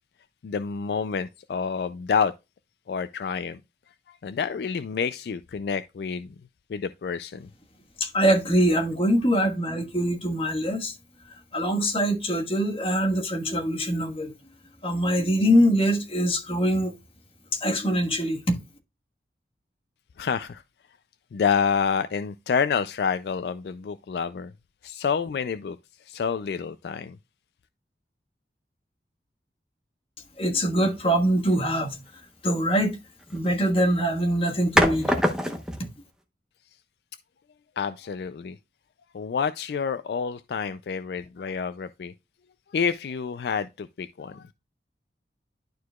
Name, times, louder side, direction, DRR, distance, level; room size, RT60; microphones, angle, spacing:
voice 1, 0.4-2.3 2.9-3.6 4.1-6.3 6.7-7.5 20.2-20.6 21.3-24.5 24.8-25.8 26.1-27.2 37.8-38.6 39.1-42.1 42.7-44.5, left 6 dB, 65° left, 0.3 m, -28 dB
voice 2, 8.0-10.9 11.5-14.3 14.8-17.0 17.5-18.6 30.4-32.0 32.4-33.0 33.3-35.1 35.5-35.6, equal, 30° left, 1.4 m, -23 dB
sound 1, 30.8-31.1 33.2-33.6 34.8-35.9, equal, 5° right, 0.9 m, -24 dB
11.5 x 4.6 x 2.3 m
head